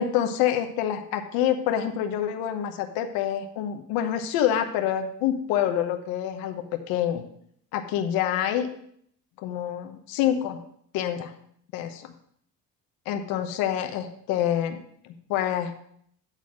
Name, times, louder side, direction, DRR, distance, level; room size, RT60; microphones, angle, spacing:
voice 1, 0.0-7.2 7.7-8.7 9.4-10.6 10.9-11.3 11.7-12.1 13.1-14.8 15.1-15.7, left 10 dB, 90° left, 6 dB, 1.0 m, -27 dB
9.1 x 4.2 x 6.2 m, 0.68 s
cardioid pair, 105°, 35 cm